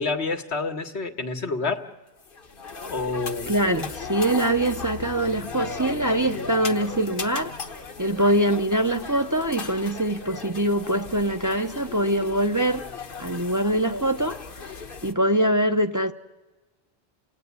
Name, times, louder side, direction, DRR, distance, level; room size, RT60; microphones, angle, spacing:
voice 1, 0.0-1.9 2.9-3.5, left 3 dB, 80° left, 1.8 m, -28 dB
sound 1, 2.2-15.1, left 5 dB, 55° left, 1.4 m, -36 dB
voice 2, 3.5-7.5 8.0-12.9 13.2-14.4 15.0-16.1, right 1 dB, 20° right, 0.8 m, -23 dB
29.0 x 18.5 x 9.5 m
omnidirectional pair, 1.1 m